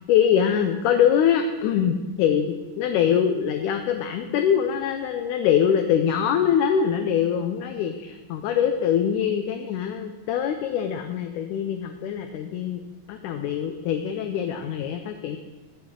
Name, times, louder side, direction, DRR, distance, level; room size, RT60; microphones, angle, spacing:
voice 1, 0.0-12.8 13.1-15.4, left 8 dB, 75° left, 6 dB, 2.0 m, -23 dB
14.5 x 8.8 x 3.8 m, 1.2 s
omnidirectional pair, 4.0 m